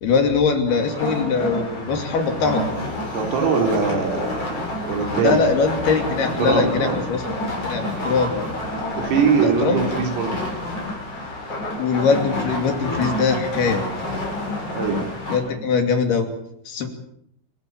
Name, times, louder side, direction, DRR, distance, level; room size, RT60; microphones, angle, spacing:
voice 1, 0.0-2.6 5.2-7.2 7.6-8.5 9.4-9.9 11.8-13.8 15.3-16.3 16.7-16.9, left 5 dB, 55° left, 5 dB, 4.3 m, -21 dB
sound 1, 0.7-15.4, left 1 dB, 30° left, 7.3 m, -28 dB
voice 2, 3.1-5.4 6.4-7.0 9.0-10.5 14.7-15.1 15.6-15.7, right 6 dB, 90° right, 4 dB, 6.1 m, -22 dB
27.0 x 14.0 x 8.8 m, 0.72 s
omnidirectional pair, 5.9 m